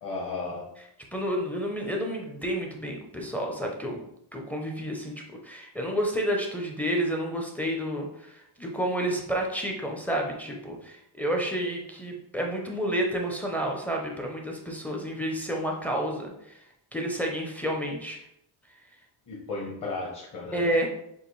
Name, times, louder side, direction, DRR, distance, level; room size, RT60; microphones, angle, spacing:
voice 1, 0.0-0.7 19.3-20.7, left 3 dB, 40° left, -3 dB, 1.0 m, -34 dB
voice 2, 1.1-4.0 4.3-5.1 5.4-16.6 16.9-18.2 20.5-20.9, equal, 5° left, 1 dB, 0.4 m, -30 dB
6.8 x 2.5 x 3.1 m, 0.76 s
cardioid pair, 165°, 49 cm